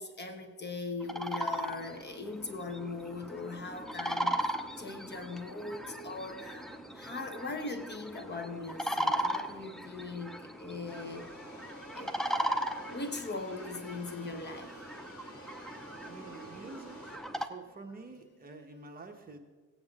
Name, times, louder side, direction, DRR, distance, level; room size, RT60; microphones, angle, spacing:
voice 1, 0.0-11.3 11.9-12.4 12.9-14.7, left 3 dB, 30° left, 6 dB, 1.2 m, -40 dB
sound 1, 1.0-17.5, equal, ahead, 0.6 m, -38 dB
sound 2, 10.9-17.2, right 1 dB, 55° left, 4.0 m, -51 dB
voice 2, 16.0-19.4, right 3 dB, 25° right, 3 dB, 1.2 m, -48 dB
17.5 x 8.7 x 3.7 m, 1.4 s
cardioid pair, 115°, 33 cm